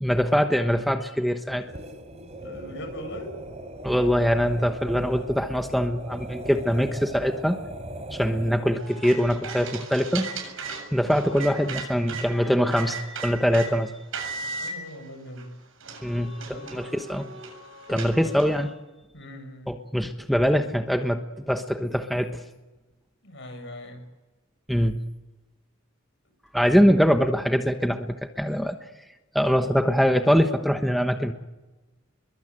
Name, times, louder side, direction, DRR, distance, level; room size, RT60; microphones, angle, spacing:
voice 1, 0.0-1.7 3.8-7.6 8.1-10.3 10.7-13.9 16.0-17.3 17.9-18.7 19.7-22.4 24.7-25.0 26.5-28.8 29.3-31.3, equal, ahead, 5 dB, 1.1 m, -23 dB
sound 1, 1.6-9.0, right 1 dB, 35° right, 4.2 m, -39 dB
voice 2, 2.4-3.4 8.2-8.5 14.6-15.5 16.2-17.3 17.9-18.3 19.1-19.7 23.2-24.0, left 1 dB, 60° left, 6 dB, 7.5 m, -41 dB
sound 2, 8.8-12.3 12.7-13.7 14.1-14.7 15.4-15.5 15.8-18.6, right 4 dB, 75° right, 7.6 m, -36 dB
30.0 x 22.0 x 9.0 m, 1.1 s
head